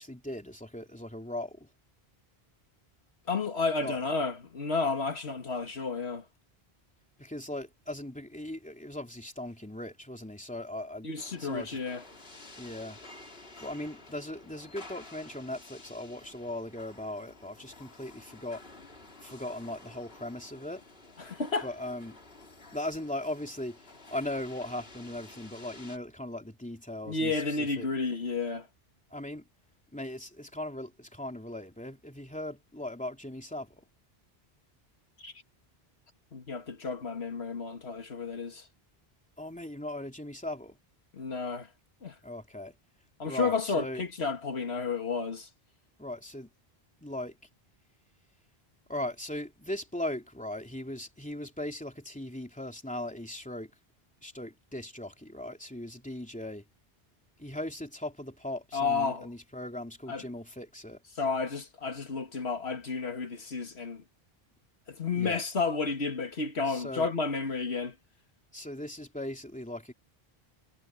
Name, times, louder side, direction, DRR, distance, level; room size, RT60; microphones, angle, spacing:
voice 1, 0.0-1.7 3.8-4.0 7.2-11.1 11.4-11.8 12.6-13.0 13.6-18.6 19.2-20.8 21.6-22.2 22.7-23.8 24.1-27.9 29.1-29.4 29.9-33.8 39.4-40.8 42.2-42.7 43.2-44.0 46.0-46.5 47.0-47.4 48.9-53.7 54.2-56.6 57.4-61.0 65.1-65.4 66.7-67.1 68.5-69.9, left 1 dB, 5° left, 3.1 m, -38 dB
voice 2, 3.3-6.2 11.0-12.0 21.2-21.7 27.1-28.7 35.2-35.3 36.3-38.7 41.1-41.7 42.0-42.2 43.2-45.5 58.7-59.3 60.1-60.2 61.2-64.0 64.9-68.0, left 4 dB, 90° left, 2.3 m, -31 dB
sound 1, 11.2-26.0, left 2 dB, 70° left, 3.3 m, -51 dB
omnidirectional pair, 1.1 m